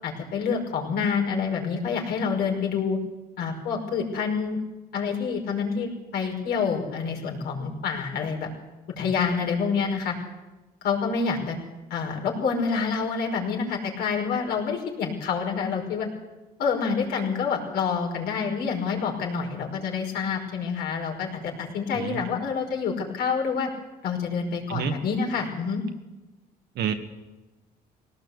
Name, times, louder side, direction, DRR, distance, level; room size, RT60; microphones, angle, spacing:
voice 1, 0.0-3.0 3.4-4.6 4.9-8.5 9.0-10.1 10.8-11.6 11.9-16.1 16.6-23.7 24.0-25.8, left 5 dB, 70° left, 1 dB, 5.3 m, -27 dB
voice 2, 21.9-22.2 24.7-24.9 26.8-26.9, right 8 dB, 75° right, 6 dB, 2.1 m, -28 dB
20.5 x 18.0 x 8.3 m, 1.1 s
cardioid pair, 110°, 17 cm